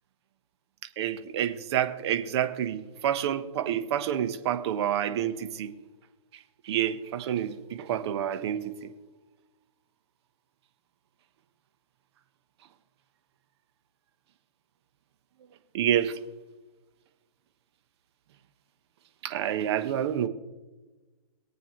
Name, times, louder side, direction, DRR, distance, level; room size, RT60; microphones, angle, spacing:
voice 1, 1.0-5.7 6.6-8.9 15.7-16.2 19.2-20.3, right 10 dB, 45° right, 1.2 m, -28 dB
23.0 x 8.6 x 3.2 m
hypercardioid pair, 145°, 20 cm